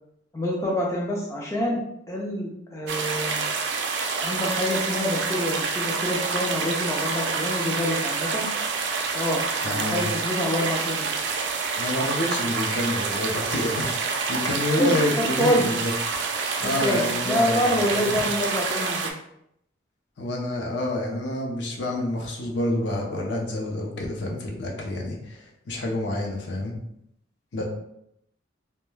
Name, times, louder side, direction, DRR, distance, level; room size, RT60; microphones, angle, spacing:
voice 1, 0.3-1.8 2.1-3.4 4.2-8.5 9.1-11.3 14.8-15.7 16.6-19.1 27.6-27.7, equal, 15° left, -3 dB, 0.3 m, -27 dB
sound 1, 2.9-19.1, right 4 dB, 65° right, 0.3 m, -27 dB
voice 2, 9.6-10.1 11.8-15.9 16.6-18.1 20.2-26.7 27.5-27.6, left 1 dB, 65° left, 0 dB, 0.5 m, -28 dB
2.2 x 2.1 x 3.1 m, 0.76 s
head